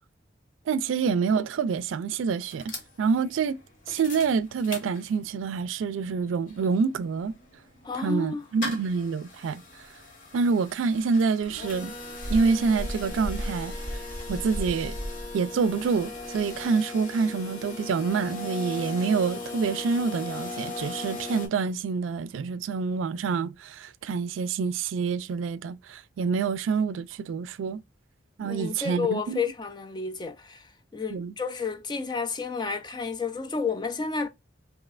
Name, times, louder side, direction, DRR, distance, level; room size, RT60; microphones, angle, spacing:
voice 1, 0.7-3.6 3.9-7.4 7.9-9.6 10.3-11.9 12.3-13.8 14.3-14.9 15.3-27.8 28.4-29.4 31.1-31.3, right 5 dB, 85° right, 0.3 m, -27 dB
sound 1, 2.5-5.5 5.9-6.0 6.1-21.5, left 3 dB, 45° left, 1.0 m, -39 dB
voice 2, 7.8-8.4 28.4-34.3, left 5 dB, 20° left, 0.3 m, -31 dB
sound 2, 11.4-16.7, equal, 65° left, 1.7 m, -37 dB
3.1 x 2.7 x 2.4 m
head